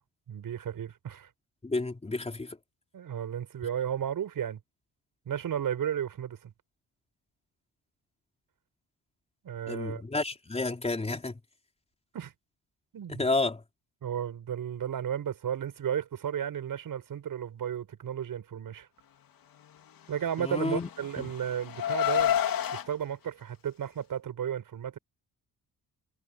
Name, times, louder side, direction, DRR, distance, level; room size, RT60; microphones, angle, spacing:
voice 1, 0.3-1.3 2.9-4.6 5.3-6.5 9.4-10.0 12.1-12.3 12.9-13.2 14.0-18.9 20.1-22.4 22.7-25.0, right 9 dB, 65° right, 6.9 m, -33 dB
voice 2, 1.6-2.6 9.7-11.4 13.1-13.6 20.4-20.9 21.2-21.3, left 3 dB, 15° left, 4.4 m, -31 dB
Car, 20.3-22.9, left 10 dB, 65° left, 2.8 m, -29 dB
wide cardioid pair, 175°, 36 cm